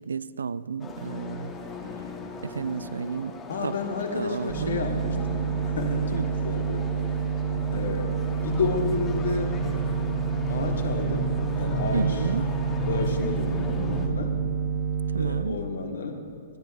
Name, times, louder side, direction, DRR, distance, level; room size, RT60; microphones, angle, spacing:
voice 1, 0.0-1.6 2.4-3.8 4.1-4.8 6.1-6.3 11.9-12.5 15.1-15.6, right 5 dB, 75° right, 0.3 m, -31 dB
sound 1, 0.8-14.1, left 2 dB, 20° left, 1.3 m, -36 dB
voice 2, 1.8-2.1 3.5-6.9 7.7-9.5 10.5-12.2 12.8-14.4 15.2-16.2, left 4 dB, 70° left, 1.5 m, -31 dB
sound 2, 4.5-15.4, right 6 dB, 60° right, 1.4 m, -28 dB
26.5 x 10.5 x 2.6 m
figure-of-eight pair, 115°, 0 cm